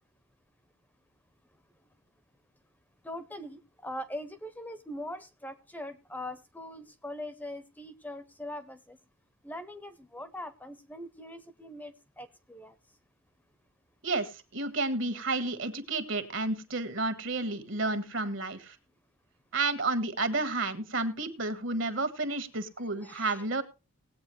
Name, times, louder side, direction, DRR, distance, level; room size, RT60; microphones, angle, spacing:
voice 1, 3.0-9.0 9.4-12.7 23.0-23.5, left 1 dB, 10° left, 12 dB, 0.6 m, -42 dB
voice 2, 14.0-18.7 19.5-23.6, right 3 dB, 65° right, 11 dB, 1.5 m, -31 dB
19.0 x 8.5 x 3.1 m, 0.29 s
head